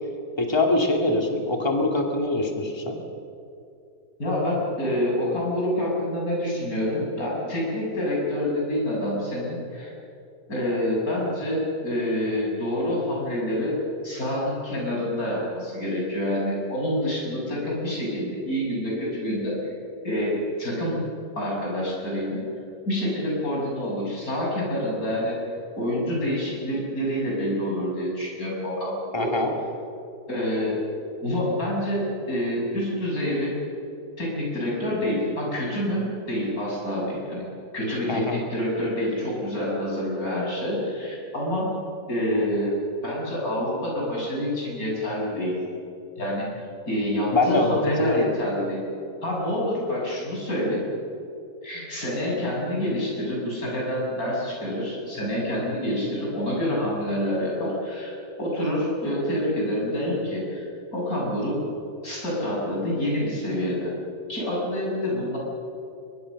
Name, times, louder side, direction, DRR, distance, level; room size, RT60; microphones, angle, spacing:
voice 1, 0.4-3.0 29.1-29.5 38.1-38.4 47.3-48.3, left 2 dB, 15° left, 2 dB, 2.4 m, -23 dB
voice 2, 4.2-9.9 10.5-13.7 14.0-19.7 20.0-21.0 21.4-22.4 22.9-25.4 25.8-29.3 30.3-30.8 31.2-33.6 34.2-37.4 37.7-41.7 42.1-42.7 43.0-45.5 46.2-46.5 46.9-48.8 49.2-50.8 51.6-58.1 58.4-60.7 60.9-61.6 62.0-63.9 64.3-65.4, left 1 dB, 65° left, -4 dB, 8.1 m, -27 dB
23.5 x 22.5 x 6.5 m, 2.6 s
omnidirectional pair, 1.7 m